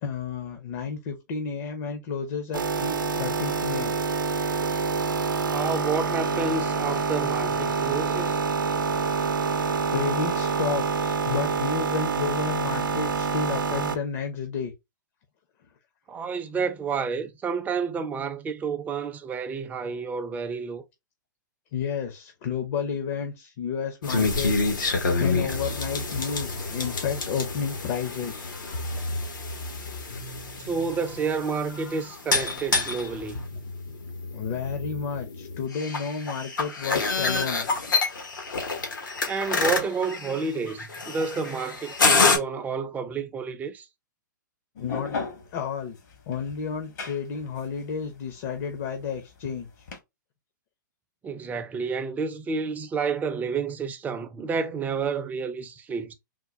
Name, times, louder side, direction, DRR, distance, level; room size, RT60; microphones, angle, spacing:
voice 1, 0.0-4.0 9.9-14.7 18.0-18.1 21.7-28.5 28.9-29.2 34.3-37.7 44.8-45.2 45.5-46.0 46.3-49.9, left 6 dB, 45° left, 0.7 m, -31 dB
sound 1, 2.5-14.0, right 5 dB, 85° right, 0.6 m, -26 dB
voice 2, 5.5-8.4 16.1-20.8 30.6-33.4 39.2-43.9 51.2-56.1, right 5 dB, 15° right, 0.5 m, -30 dB
sound 2, 24.0-42.4, left 4 dB, 80° left, 1.1 m, -28 dB
sound 3, 44.8-50.0, left 4 dB, 60° left, 1.2 m, -37 dB
3.8 x 2.2 x 2.9 m
hypercardioid pair, 115°, 11 cm